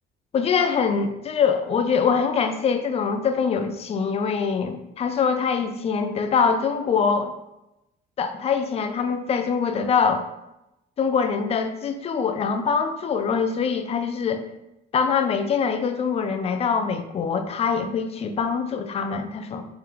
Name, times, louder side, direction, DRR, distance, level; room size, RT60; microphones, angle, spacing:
voice 1, 0.3-7.4 8.2-10.2 11.0-14.4 14.9-19.7, left 6 dB, 35° left, 8 dB, 0.4 m, -24 dB
3.7 x 3.3 x 2.9 m, 0.89 s
cardioid pair, 120°, 19 cm